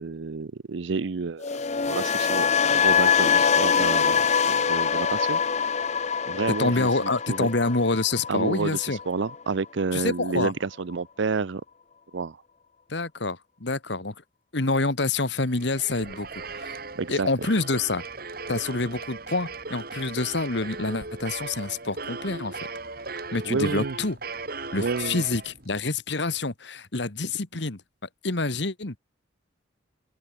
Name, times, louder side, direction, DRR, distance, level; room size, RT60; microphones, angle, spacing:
voice 1, 0.0-1.4 1.9-4.2 4.5-5.4 6.3-7.5 8.3-11.6 12.1-12.4 17.0-17.3 23.4-24.0 24.8-25.2, right 4 dB, 70° right, 0.6 m, -29 dB
sound 1, 1.4-9.5 9.8-10.1, left 6 dB, 35° left, 0.6 m, -24 dB
voice 2, 6.5-9.0 9.9-10.5 12.9-14.1 14.5-16.8 17.1-18.0 18.5-22.6 23.3-24.2 24.7-27.8 28.2-28.9, left 3 dB, 65° left, 1.7 m, -27 dB
sound 2, 15.4-25.8, right 3 dB, 50° right, 5.0 m, -38 dB
open air
head